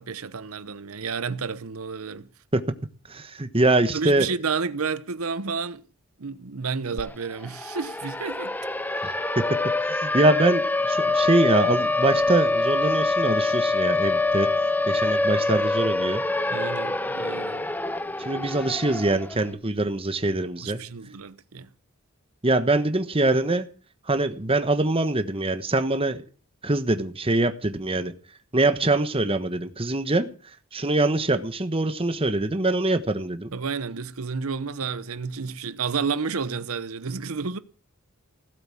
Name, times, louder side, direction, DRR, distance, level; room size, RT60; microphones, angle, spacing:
voice 1, 0.0-2.3 3.9-5.8 6.2-8.6 16.5-17.6 20.6-21.7 33.5-37.6, right 5 dB, 90° right, 0.9 m, -31 dB
voice 2, 3.1-4.3 9.0-9.4 9.8-14.5 14.9-16.2 18.2-20.8 22.4-23.7 24.1-26.2 26.6-28.1 28.5-30.3 30.7-33.5, right 2 dB, 25° right, 1.3 m, -23 dB
Siren, 7.0-7.1 7.4-19.4, left 2 dB, 10° left, 0.7 m, -25 dB
16.5 x 8.1 x 8.6 m
head